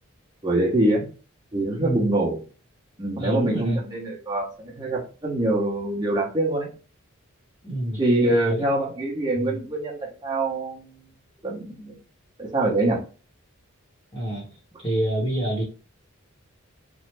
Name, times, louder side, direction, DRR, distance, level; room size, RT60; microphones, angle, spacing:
voice 1, 0.4-1.1 1.5-2.4 3.0-6.7 8.0-11.1 11.4-12.0 12.4-13.0, right 1 dB, 20° right, -3 dB, 0.9 m, -24 dB
voice 2, 1.8-2.1 3.2-3.8 7.6-8.0 8.3-8.6 9.4-9.6 14.1-14.5 14.8-15.6, right 1 dB, 20° left, -3 dB, 0.9 m, -27 dB
3.1 x 2.0 x 3.2 m, 0.35 s
head